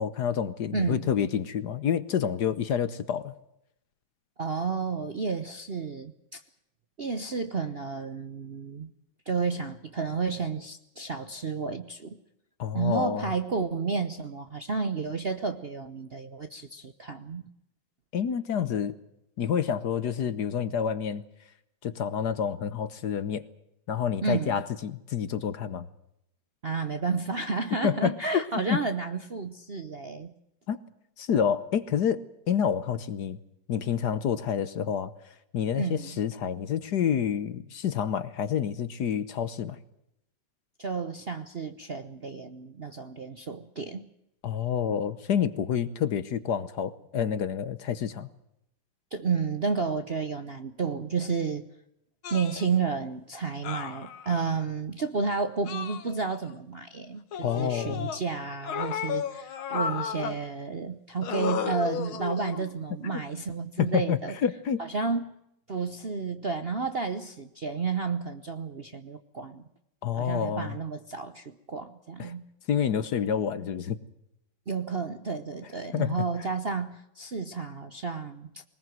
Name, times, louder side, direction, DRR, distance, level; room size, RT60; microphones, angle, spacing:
voice 1, 0.0-3.3 12.6-13.3 18.1-18.9 19.4-21.2 21.8-23.4 23.9-25.9 27.8-28.4 28.7-28.8 30.7-30.8 31.2-33.4 33.7-35.1 35.5-39.8 44.4-48.3 57.4-58.1 63.8-64.8 70.0-70.8 72.2-72.3 72.7-74.0 75.9-76.1, left 8 dB, 60° left, 14 dB, 1.4 m, -28 dB
voice 2, 0.7-1.1 4.4-6.4 7.0-8.9 9.3-12.2 12.7-17.4 24.2-24.6 26.6-30.3 35.7-36.2 40.8-44.1 49.1-51.7 52.3-64.3 64.8-65.3 65.7-69.6 70.2-72.4 74.7-78.6, right 5 dB, 45° right, 9 dB, 0.8 m, -31 dB
sound 1, 52.2-52.7 53.6-54.6 55.7-56.5 57.3-58.2 58.6-60.4 61.2-62.7 63.9-64.0, left 7 dB, 85° left, 2.1 m, -34 dB
21.5 x 20.0 x 7.7 m, 0.80 s
omnidirectional pair, 2.2 m